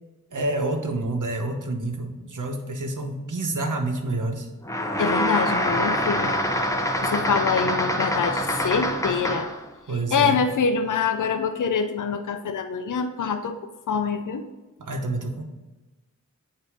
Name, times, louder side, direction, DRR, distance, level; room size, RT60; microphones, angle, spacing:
voice 1, 0.3-4.5 9.9-10.4 14.8-15.4, right 2 dB, 75° right, 4 dB, 1.0 m, -28 dB
sound 1, 4.6-9.6, equal, 10° left, 0.7 m, -25 dB
voice 2, 5.0-6.3 7.0-9.5 10.1-13.5 13.9-14.4, left 5 dB, 75° left, 7 dB, 0.5 m, -25 dB
8.3 x 2.8 x 4.9 m, 1.1 s
wide cardioid pair, 65°, 31 cm